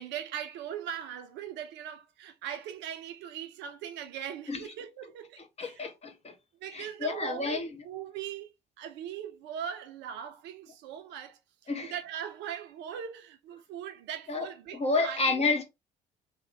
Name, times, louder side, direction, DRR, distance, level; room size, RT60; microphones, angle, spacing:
voice 1, 0.0-5.9 6.6-8.5 8.8-15.6, right 9 dB, 60° right, 0.5 m, -40 dB
voice 2, 5.6-6.3 6.7-7.7 11.7-11.9 14.3-15.6, left 3 dB, 30° left, 0.8 m, -30 dB
2.7 x 2.0 x 3.2 m
figure-of-eight pair, 45°, 21 cm